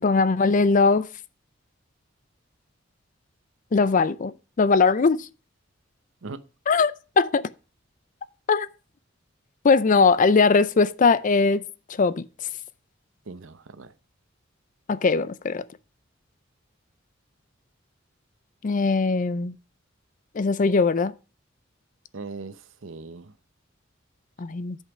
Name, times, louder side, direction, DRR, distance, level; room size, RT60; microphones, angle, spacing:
voice 1, 0.0-1.1 3.7-5.3 6.7-7.4 8.5-8.7 9.6-11.6 12.0-12.2 14.9-15.6 18.6-19.5 20.3-21.1 24.4-24.8, left 4 dB, 40° left, 0.5 m, -20 dB
voice 2, 13.2-13.9 22.1-23.3, right 3 dB, 75° right, 0.8 m, -39 dB
9.8 x 5.6 x 4.9 m
head